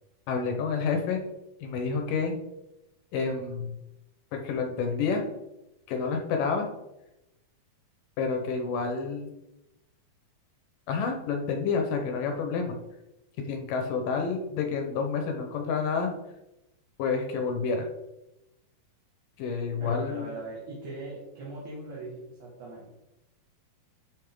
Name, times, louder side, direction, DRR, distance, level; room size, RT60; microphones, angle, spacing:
voice 1, 0.3-1.2 1.6-2.3 3.1-3.8 4.3-5.2 5.9-6.7 8.2-9.3 10.9-12.8 13.4-16.1 17.0-17.9 19.4-20.3, left 5 dB, 70° left, 3 dB, 2.4 m, -29 dB
voice 2, 19.8-22.9, right 2 dB, 60° right, -5 dB, 2.9 m, -40 dB
11.0 x 5.2 x 3.8 m, 0.94 s
omnidirectional pair, 4.3 m